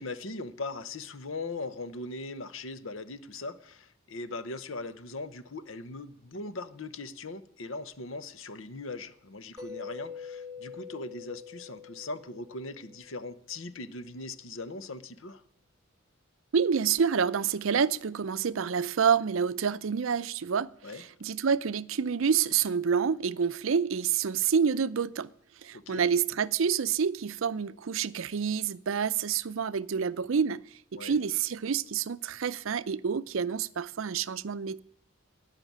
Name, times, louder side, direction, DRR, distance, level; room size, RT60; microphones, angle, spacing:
voice 1, 0.0-15.4 20.8-21.0 25.7-26.1 30.9-31.2, left 3 dB, 65° left, 0.9 m, -40 dB
Mallet percussion, 9.6-13.3, left 6 dB, 20° right, 1.6 m, -45 dB
voice 2, 16.5-20.7 21.2-25.3 25.6-30.6 30.9-34.8, right 6 dB, 70° right, 0.5 m, -28 dB
17.5 x 5.8 x 9.4 m
head